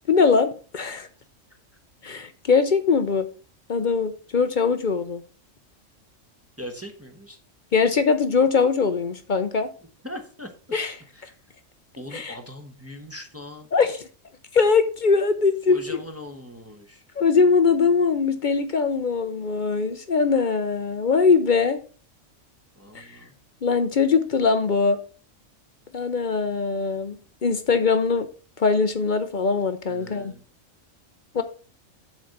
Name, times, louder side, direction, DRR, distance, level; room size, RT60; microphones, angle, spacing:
voice 1, 0.1-1.1 2.0-3.3 3.7-5.2 7.7-9.7 10.7-10.9 12.1-12.3 13.7-14.1 14.5-16.0 17.2-21.8 22.9-23.1 23.6-25.0 25.9-28.3 28.6-30.3 31.3-31.4, left 5 dB, 45° left, 10 dB, 0.7 m, -21 dB
voice 2, 6.6-7.4 10.0-10.5 11.1-11.4 12.0-13.7 15.7-17.0 22.7-23.3 29.9-30.4, left 1 dB, 10° right, 4 dB, 1.0 m, -40 dB
7.5 x 4.2 x 6.5 m, 0.39 s
omnidirectional pair, 1.3 m